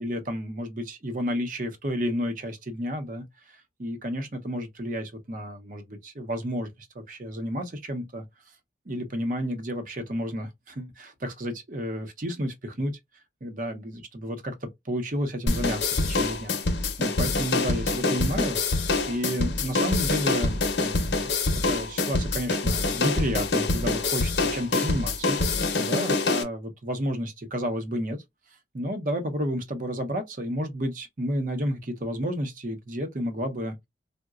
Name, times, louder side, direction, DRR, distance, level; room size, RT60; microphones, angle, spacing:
voice 1, 0.0-6.7 6.9-8.2 8.9-12.9 13.4-14.5 14.8-16.6 17.0-18.6 19.1-21.3 21.7-25.4 25.8-28.2 28.7-33.9, equal, 45° right, 0.7 m, -31 dB
sound 1, 15.5-26.4, left 3 dB, 70° left, 0.7 m, -25 dB
3.8 x 2.2 x 2.3 m
head